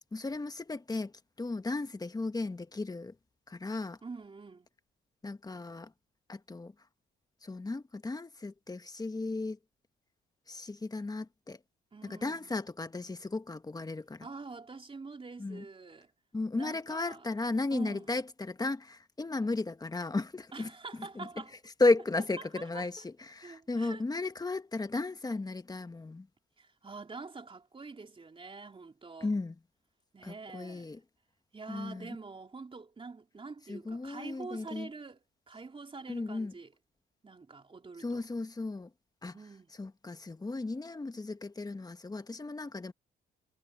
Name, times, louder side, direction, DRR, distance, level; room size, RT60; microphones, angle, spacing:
voice 1, 0.1-1.1 1.4-3.1 3.5-4.0 5.2-5.9 6.3-6.7 7.4-9.6 10.5-11.6 12.0-14.3 15.4-15.6 16.3-20.7 21.1-21.3 21.8-26.3 29.2-29.5 30.2-31.0 31.7-32.2 33.7-34.9 36.1-36.5 38.0-38.9 39.2-39.4 39.8-42.9, left 3 dB, 20° left, 1.5 m, -34 dB
voice 2, 4.0-4.7 11.9-12.5 14.2-16.1 16.5-17.3 17.7-18.1 20.5-21.6 22.4-23.1 23.4-24.0 26.6-29.3 30.1-30.9 31.5-36.7 37.2-38.2 39.3-39.7, right 4 dB, 25° right, 3.8 m, -46 dB
cardioid pair, 90°, 20 cm